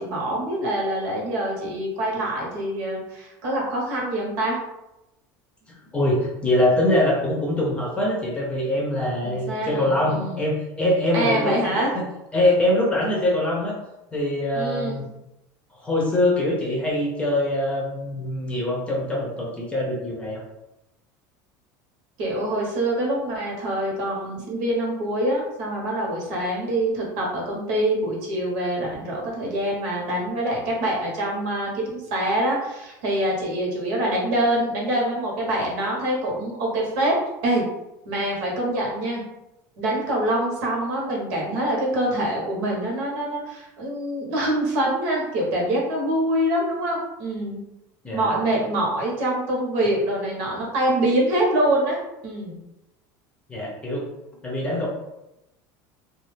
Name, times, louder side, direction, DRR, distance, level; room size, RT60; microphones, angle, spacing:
voice 1, 0.0-4.6 9.2-10.4 11.1-11.9 14.5-15.0 22.2-37.1 37.4-37.6 38.0-39.2 39.8-47.6 48.1-52.0 52.2-52.6, right 1 dB, 75° right, -2 dB, 1.2 m, -25 dB
voice 2, 5.7-12.1 12.3-13.8 14.1-15.0 15.8-20.4 48.0-48.3 53.5-54.1 54.4-54.9, left 1 dB, 15° left, -3 dB, 0.7 m, -23 dB
2.6 x 2.4 x 3.3 m, 0.91 s
cardioid pair, 150°, 9 cm